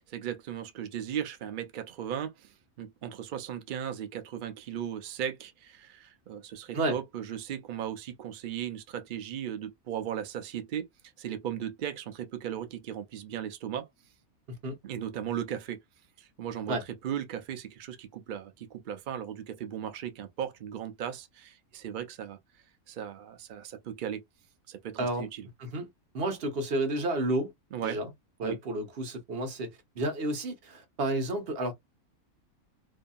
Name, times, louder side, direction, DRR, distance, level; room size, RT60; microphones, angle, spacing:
voice 1, 0.0-2.5 2.8-10.9 11.2-13.9 14.8-15.8 16.2-16.8 17.0-22.4 22.9-24.2 24.7-25.5 27.7-28.0 28.4-28.6, right 9 dB, 90° right, 0.4 m, -37 dB
voice 2, 26.1-27.5 27.8-28.1 28.4-29.7 30.0-31.7, right 1 dB, 50° right, 0.9 m, -31 dB
2.7 x 2.6 x 2.2 m
omnidirectional pair, 1.5 m